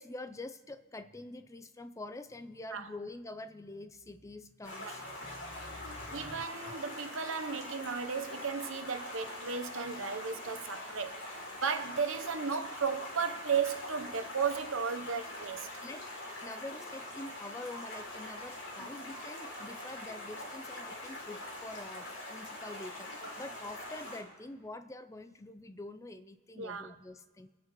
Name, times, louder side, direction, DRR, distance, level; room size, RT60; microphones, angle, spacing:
voice 1, 0.0-6.5 15.8-16.1 16.4-23.1 23.4-27.5, left 2 dB, 15° left, 0.4 m, -46 dB
Stream, 4.6-24.2, left 1 dB, 65° left, 3.4 m, -44 dB
voice 2, 6.1-15.7 18.8-18.9 23.2-23.3 26.6-26.9, right 6 dB, 75° right, 0.9 m, -35 dB
28.0 x 9.7 x 3.1 m
head